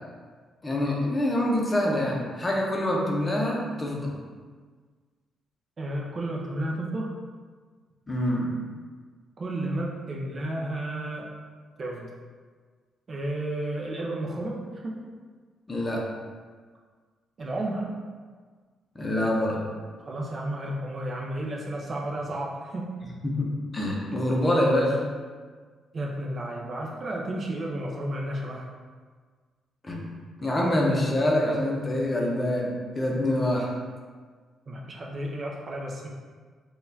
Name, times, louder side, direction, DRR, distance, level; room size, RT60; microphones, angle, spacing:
voice 1, 0.6-4.1 8.1-8.5 15.7-16.1 18.9-19.6 23.2-25.0 29.8-30.1 30.4-33.7, left 1 dB, 20° left, -2 dB, 0.6 m, -25 dB
voice 2, 5.8-7.1 9.4-11.3 11.8-12.1 13.1-15.1 17.4-17.9 20.0-22.9 25.9-28.7 34.7-36.1, right 1 dB, 40° right, -2 dB, 0.5 m, -32 dB
3.9 x 2.3 x 2.6 m, 1.5 s
cardioid pair, 90°, 0 cm